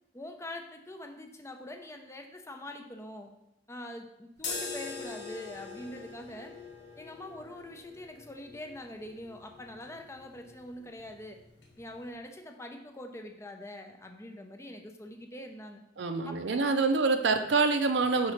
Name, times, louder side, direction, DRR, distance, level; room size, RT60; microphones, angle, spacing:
voice 1, 0.1-3.3 3.7-6.6 7.0-11.4 11.8-15.8 16.2-16.8, left 1 dB, 15° left, 4 dB, 0.6 m, -44 dB
sound 1, 4.4-12.2, left 4 dB, 75° left, 1.1 m, -44 dB
voice 2, 16.0-18.3, right 4 dB, 80° right, 7 dB, 0.6 m, -26 dB
4.8 x 4.0 x 5.7 m, 0.84 s
head